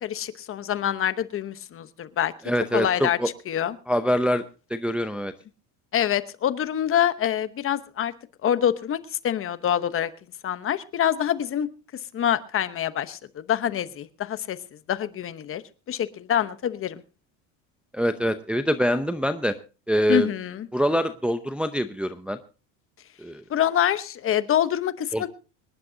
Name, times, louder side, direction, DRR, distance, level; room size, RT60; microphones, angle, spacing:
voice 1, 0.0-2.3 2.7-3.2 3.5-3.8 5.9-8.1 8.4-10.1 10.4-11.7 12.1-14.6 14.9-15.6 15.9-17.0 20.1-20.7 23.5-25.3, left 10 dB, 35° left, 13 dB, 1.0 m, -25 dB
voice 2, 2.4-3.3 3.9-4.4 4.7-5.3 17.9-19.6 19.9-20.3 20.7-22.4 23.2-23.4 25.1-25.3, equal, 5° right, 9 dB, 0.6 m, -24 dB
25.5 x 10.5 x 2.7 m, 0.34 s
cardioid pair, 125°, 38 cm